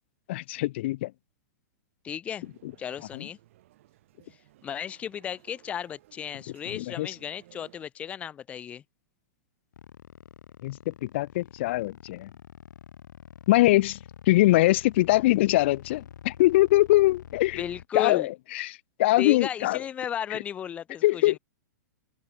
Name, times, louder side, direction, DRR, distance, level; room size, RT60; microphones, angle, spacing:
voice 1, 0.3-1.1 2.6-2.7 3.1-3.3 6.7-7.1 10.6-12.3 13.5-14.0 14.3-17.6 17.9-19.8 20.3-20.4 21.0-21.4, left 17 dB, 40° left, 0.6 m, -23 dB
voice 2, 2.0-2.4 2.8-3.4 4.6-8.8 17.6-18.3 19.2-21.2, left 9 dB, 15° left, 1.6 m, -34 dB
sound 1, 2.4-7.9, right 15 dB, 45° right, 7.9 m, -59 dB
sound 2, 9.7-17.9, left 9 dB, 90° left, 2.3 m, -47 dB
open air
supercardioid pair, 175°, 9 cm